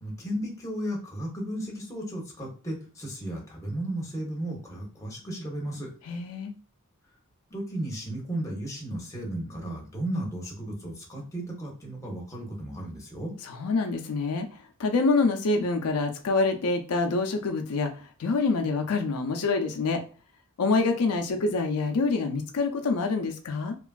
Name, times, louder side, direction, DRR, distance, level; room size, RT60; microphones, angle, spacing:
voice 1, 0.0-5.9 7.5-13.3, right 1 dB, 15° left, -1 dB, 0.8 m, -34 dB
voice 2, 6.1-6.5 13.4-14.5 14.8-17.9 18.2-20.0 20.6-23.7, left 3 dB, 90° left, 4 dB, 0.5 m, -26 dB
2.9 x 2.4 x 2.3 m, 0.38 s
head